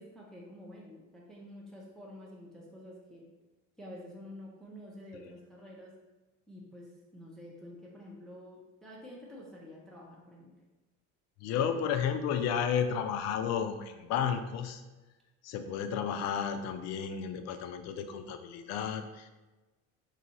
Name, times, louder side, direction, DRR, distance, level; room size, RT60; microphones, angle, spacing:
voice 1, 0.0-3.3 3.8-5.9 6.5-10.5, left 1 dB, ahead, -4 dB, 0.4 m, -49 dB
voice 2, 11.4-14.8 15.4-19.3, left 7 dB, 60° left, 8 dB, 0.4 m, -32 dB
3.9 x 2.7 x 4.2 m, 1.2 s
cardioid pair, 180°, 29 cm